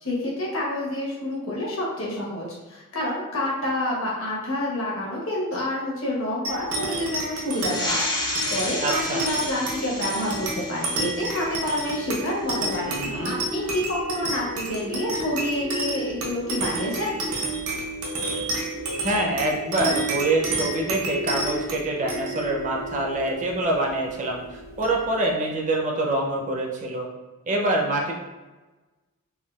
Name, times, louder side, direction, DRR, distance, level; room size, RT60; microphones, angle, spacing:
voice 1, 0.0-17.2, left 1 dB, 65° left, -3 dB, 1.0 m, -28 dB
sound 1, 6.4-25.3, right 2 dB, 80° right, 0.7 m, -30 dB
sound 2, 7.5-12.6, left 2 dB, 20° left, 0.4 m, -32 dB
voice 2, 8.8-9.3 12.8-13.4 19.0-27.1 27.5-28.1, right 2 dB, 35° right, 1 dB, 0.4 m, -25 dB
3.5 x 2.2 x 2.2 m, 1.2 s
head